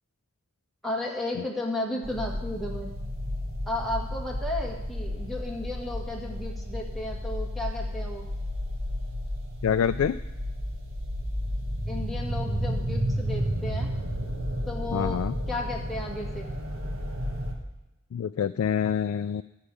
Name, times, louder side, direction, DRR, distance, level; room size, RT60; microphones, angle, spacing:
voice 1, 0.8-2.9 3.7-8.3 11.9-13.9 14.7-16.5, left 1 dB, ahead, -3 dB, 1.8 m, -34 dB
sound 1, 2.0-17.5, equal, 75° right, 1.6 m, -32 dB
voice 2, 9.6-10.2 14.9-15.3 18.1-19.4, left 8 dB, 75° left, 11 dB, 0.3 m, -26 dB
11.5 x 4.9 x 8.5 m, 1.0 s
head